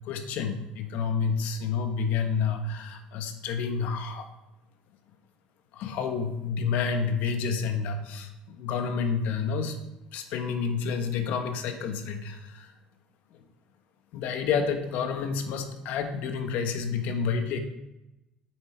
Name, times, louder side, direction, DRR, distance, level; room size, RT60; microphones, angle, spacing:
voice 1, 0.0-4.2 5.7-9.7 10.1-12.7 14.1-17.6, left 5 dB, 75° left, 6 dB, 1.4 m, -29 dB
8.8 x 7.9 x 4.6 m, 0.94 s
cardioid pair, 110°, 3 cm